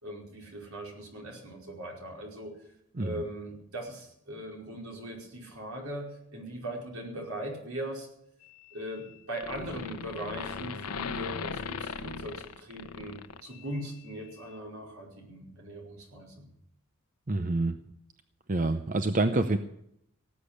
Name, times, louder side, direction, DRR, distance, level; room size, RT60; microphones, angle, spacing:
voice 1, 0.0-2.5 3.0-8.1 8.7-16.5, right 1 dB, 75° right, -1 dB, 5.1 m, -40 dB
sound 1, 8.4-9.1 9.4-13.8, left 5 dB, 85° left, 0.9 m, -38 dB
voice 2, 17.3-17.7 18.5-19.6, right 2 dB, 35° right, 8 dB, 0.7 m, -27 dB
18.5 x 8.4 x 8.6 m, 0.76 s
head